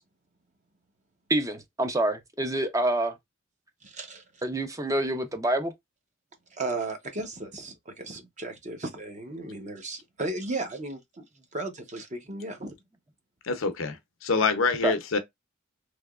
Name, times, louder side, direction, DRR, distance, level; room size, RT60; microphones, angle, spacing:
voice 1, 1.3-3.2 4.4-5.7 14.8-14.9, right 1 dB, 15° right, 0.5 m, -27 dB
voice 2, 3.8-4.2 6.5-11.2 11.5-12.7, right 2 dB, 35° right, 0.8 m, -35 dB
voice 3, 13.4-15.2, left 4 dB, 75° left, 0.7 m, -26 dB
3.3 x 2.8 x 2.3 m
head